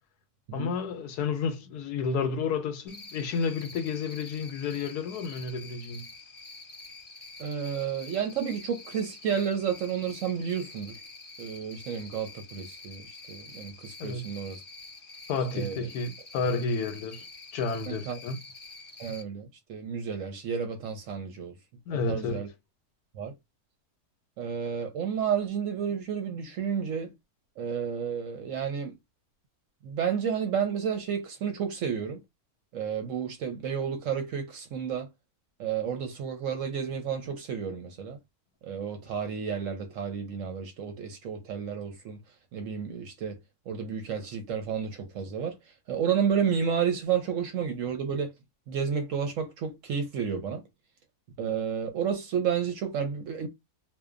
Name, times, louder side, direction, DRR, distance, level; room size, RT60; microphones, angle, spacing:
voice 1, 0.5-6.1 14.0-14.3 15.3-17.3 17.5-18.4 21.9-22.4, left 4 dB, 75° left, 1.1 m, -31 dB
Cricket, 2.9-19.2, left 3 dB, 35° left, 0.4 m, -47 dB
voice 2, 7.4-11.0 11.4-14.6 15.5-15.9 17.9-18.2 19.0-21.5 22.1-22.5 23.1-23.3 24.4-27.1 27.6-28.9 29.8-32.2 32.7-35.1 35.6-38.2 38.6-42.2 42.5-43.4 43.7-45.5 45.9-48.3 48.7-50.6 51.4-53.5, right 7 dB, 65° right, 0.8 m, -31 dB
2.8 x 2.1 x 2.4 m
omnidirectional pair, 1.7 m